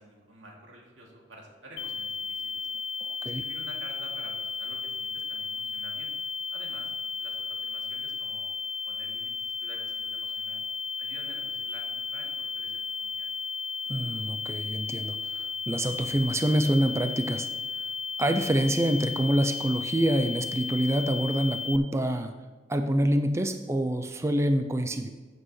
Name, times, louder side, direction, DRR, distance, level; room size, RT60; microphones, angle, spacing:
voice 1, 0.0-2.7 3.2-6.1 6.5-6.9 7.2-8.5 8.8-10.6 11.0-13.3, right 1 dB, 85° right, -2 dB, 2.5 m, -50 dB
sound 1, 1.8-21.8, left 5 dB, 65° left, 0.6 m, -34 dB
voice 2, 3.1-3.4 13.9-17.5 18.2-22.3 22.7-25.1, right 1 dB, 15° right, 8 dB, 0.4 m, -26 dB
14.5 x 7.5 x 3.2 m, 1.3 s
head